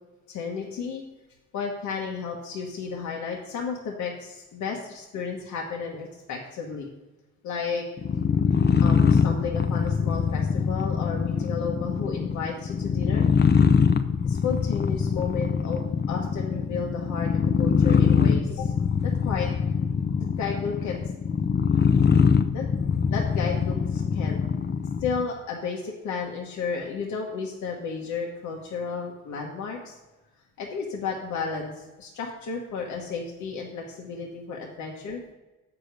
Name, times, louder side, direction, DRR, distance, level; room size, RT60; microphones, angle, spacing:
voice 1, 0.3-1.0 1.5-6.9 7.4-7.8 8.8-13.3 14.2-18.7 19.0-19.5 20.4-21.0 22.5-22.7 23.1-24.4 25.0-30.0 30.6-35.2, left 5 dB, 75° left, -1 dB, 1.2 m, -33 dB
sound 1, 8.0-25.3, left 6 dB, 35° left, 0.6 m, -23 dB
7.5 x 5.0 x 6.5 m, 1.1 s
cardioid pair, 90°, 30 cm